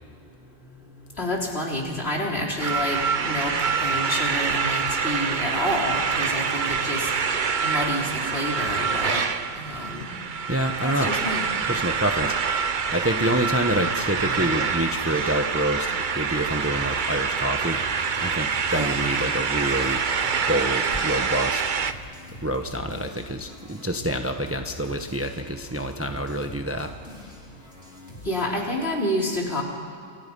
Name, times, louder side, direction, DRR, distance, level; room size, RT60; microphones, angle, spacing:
voice 1, 1.2-7.1 7.6-9.2 9.6-10.1 10.8-11.5 18.7-19.0 28.2-29.6, left 1 dB, 50° left, -2 dB, 4.5 m, -28 dB
sound 1, 2.6-21.9, right 5 dB, 45° right, 0.9 m, -26 dB
voice 2, 10.5-11.2 11.7-12.6 12.9-17.8 18.2-20.0 20.5-21.6 22.4-26.9, right 1 dB, 10° right, 5 dB, 1.1 m, -27 dB
sound 2, 17.6-28.5, left 1 dB, 80° left, 4.1 m, -45 dB
29.0 x 28.5 x 5.5 m, 2.5 s
omnidirectional pair, 1.3 m